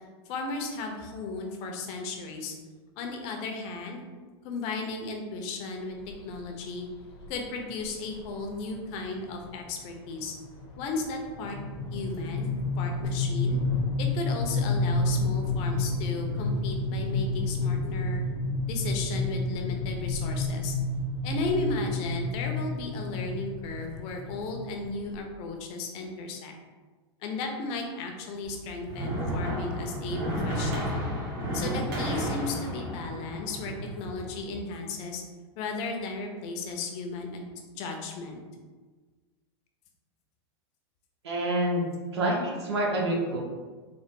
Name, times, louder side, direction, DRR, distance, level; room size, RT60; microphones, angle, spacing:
voice 1, 0.3-2.5 3.0-4.0 4.4-6.0 6.2-6.9 7.3-10.3 10.8-11.6 11.9-13.6 14.0-18.2 18.7-20.8 21.2-26.5 27.2-31.0 31.5-35.2 35.6-37.4 37.7-38.4, left 3 dB, 50° left, 3 dB, 0.7 m, -35 dB
sound 1, 6.1-6.4 7.2-7.3 7.7-7.8 8.1-8.4 8.8-25.2, left 2 dB, 70° left, 1.0 m, -30 dB
sound 2, 28.4-34.6, equal, 60° right, 1.4 m, -32 dB
voice 2, 41.2-41.8 42.1-43.4, right 1 dB, 85° right, -2 dB, 0.9 m, -27 dB
3.9 x 2.0 x 3.6 m, 1.4 s
hypercardioid pair, 115°, 14 cm